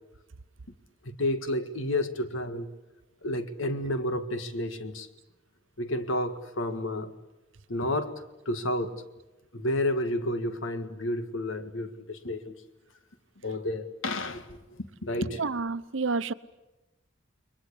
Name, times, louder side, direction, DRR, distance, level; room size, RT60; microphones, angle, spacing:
voice 1, 1.1-2.7 3.2-5.1 5.8-7.1 7.7-9.0 9.5-12.5 13.4-15.4, left 1 dB, 90° left, 1.8 m, -31 dB
voice 2, 15.3-16.3, right 4 dB, 80° right, 0.9 m, -29 dB
30.0 x 22.5 x 8.6 m
head